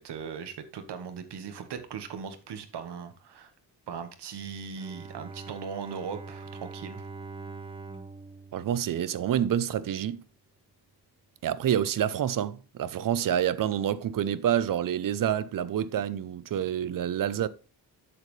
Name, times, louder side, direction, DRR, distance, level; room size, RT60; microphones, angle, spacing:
voice 1, 0.0-3.5 3.9-7.0, right 6 dB, 75° right, 1.5 m, -39 dB
Bowed string instrument, 4.7-9.7, right 4 dB, 15° right, 0.8 m, -43 dB
voice 2, 8.5-10.2 11.4-17.5, right 10 dB, 55° right, 0.6 m, -28 dB
8.0 x 7.5 x 3.2 m
wide cardioid pair, 170°, 40 cm